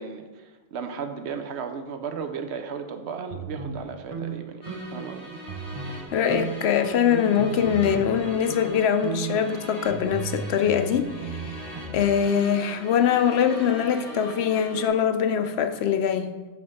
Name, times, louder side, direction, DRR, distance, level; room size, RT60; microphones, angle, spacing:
voice 1, 0.0-4.6 4.9-5.4, right 6 dB, 85° right, 7 dB, 1.0 m, -35 dB
sound 1, 3.3-5.2 5.4-6.0 6.3-8.2 8.5-8.7 9.0-12.0, right 5 dB, 35° right, 0.7 m, -35 dB
sound 2, 4.6-14.9, right 1 dB, 55° left, 2.5 m, -41 dB
voice 2, 6.1-11.7 11.9-16.3, left 8 dB, 80° left, 8 dB, 0.8 m, -23 dB
8.3 x 3.3 x 5.4 m, 1.2 s
omnidirectional pair, 1.1 m